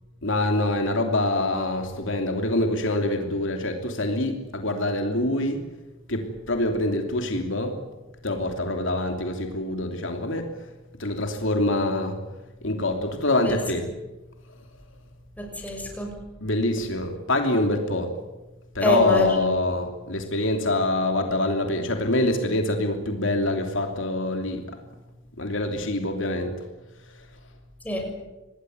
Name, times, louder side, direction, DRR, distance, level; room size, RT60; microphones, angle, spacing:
voice 1, 0.2-5.6 6.1-7.8 8.2-10.5 11.0-12.2 12.6-13.9 16.4-18.1 18.7-24.6 25.4-26.5, left 2 dB, 65° left, 4 dB, 3.0 m, -25 dB
voice 2, 15.4-16.1 18.8-19.5 27.8-28.1, equal, 10° left, 2 dB, 6.6 m, -25 dB
26.0 x 19.5 x 9.5 m, 1.1 s
head